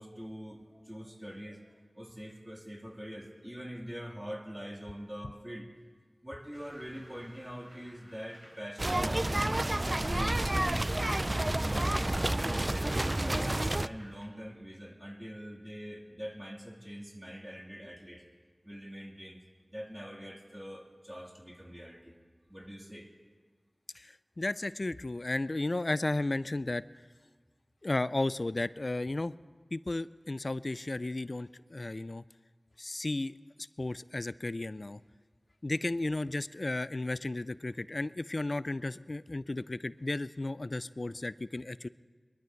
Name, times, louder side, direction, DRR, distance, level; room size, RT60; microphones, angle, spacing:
voice 1, 0.0-5.7 6.2-9.4 9.9-10.7 11.6-11.9 12.5-18.3 18.6-19.4 19.7-22.1 22.5-23.1, equal, 15° right, 1 dB, 2.0 m, -44 dB
sound 1, 6.5-14.2, right 1 dB, 50° right, 5.2 m, -51 dB
sound 2, 8.8-13.9, right 1 dB, 35° right, 0.3 m, -29 dB
voice 2, 23.9-26.8 27.8-29.3 29.7-32.2 32.8-33.3 33.8-35.0 35.6-41.9, left 2 dB, 55° left, 17 dB, 0.3 m, -34 dB
21.5 x 11.5 x 4.6 m, 1.5 s
wide cardioid pair, 50°, 0 cm